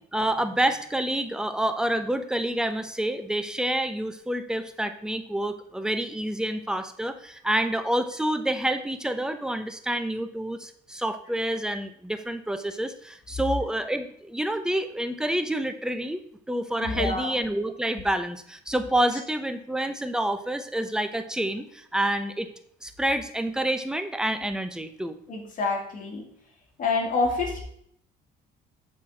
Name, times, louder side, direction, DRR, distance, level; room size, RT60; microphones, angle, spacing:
voice 1, 0.1-16.2 16.5-22.5 22.8-25.1, right 1 dB, 5° right, 9 dB, 0.7 m, -28 dB
voice 2, 16.8-17.3 25.3-26.2 26.8-27.6, left 3 dB, 50° left, 0 dB, 2.0 m, -27 dB
7.4 x 4.5 x 6.2 m, 0.66 s
cardioid pair, 110°, 17 cm